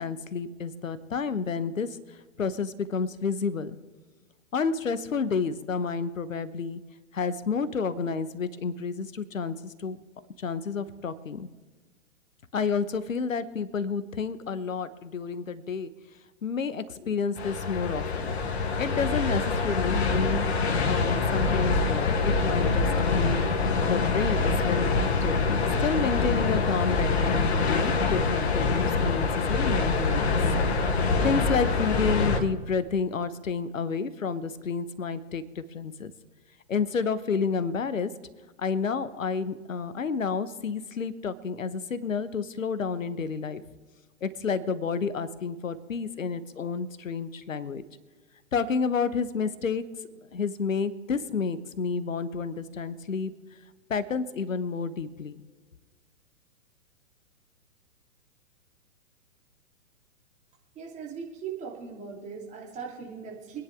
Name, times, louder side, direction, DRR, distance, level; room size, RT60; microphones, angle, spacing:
voice 1, 0.0-3.8 4.5-6.8 7.1-10.0 10.4-11.5 12.5-15.9 16.4-18.3 18.8-20.5 20.8-23.5 23.8-25.4 25.8-30.4 30.9-36.1 36.7-38.1 38.6-43.6 44.2-47.8 48.5-49.8 50.3-53.3 53.9-55.4, left 5 dB, 70° left, 14 dB, 1.2 m, -30 dB
sound 1, 17.4-32.4, left 4 dB, 50° left, 1.8 m, -25 dB
voice 2, 60.7-63.6, right 6 dB, 15° right, -2 dB, 3.1 m, -39 dB
25.0 x 10.0 x 3.6 m, 1.4 s
figure-of-eight pair, 115°, 41 cm